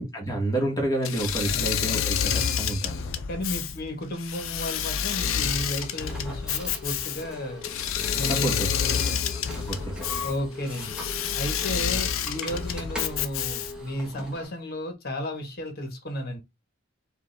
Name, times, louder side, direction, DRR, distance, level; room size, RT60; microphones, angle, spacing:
voice 1, 0.0-3.1 8.2-8.7 9.7-10.3, right 1 dB, 15° left, 1.5 m, -29 dB
Engine / Mechanisms, 1.0-13.9, left 8 dB, 80° left, 0.5 m, -29 dB
voice 2, 3.3-7.6 8.1-8.5 8.9-9.2 10.1-11.0 11.3-16.4, equal, 50° left, 1.3 m, -33 dB
sound 1, 5.1-14.5, left 3 dB, 5° right, 1.2 m, -40 dB
5.0 x 2.5 x 3.3 m
head